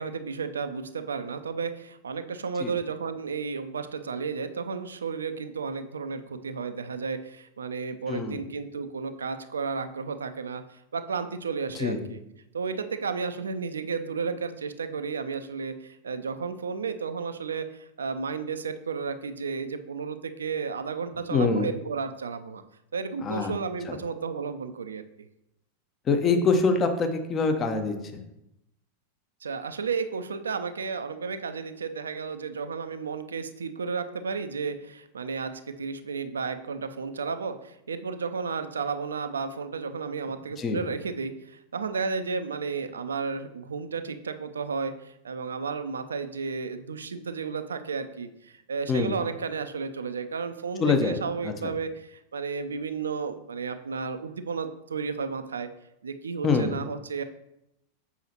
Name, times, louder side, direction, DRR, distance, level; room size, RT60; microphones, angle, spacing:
voice 1, 0.0-12.2 12.5-22.6 22.9-25.0 29.4-35.5 35.8-55.7 56.0-57.2, right 5 dB, 70° right, 10 dB, 0.4 m, -33 dB
voice 2, 8.1-8.4 11.7-12.0 21.3-21.7 23.2-23.5 23.9-24.0 26.1-27.9 40.6-40.8 48.9-49.1 50.8-51.2 51.4-51.7 56.4-56.8, left 4 dB, 25° left, 6 dB, 0.8 m, -24 dB
7.1 x 5.5 x 2.8 m, 0.84 s
figure-of-eight pair, 90°, 0 cm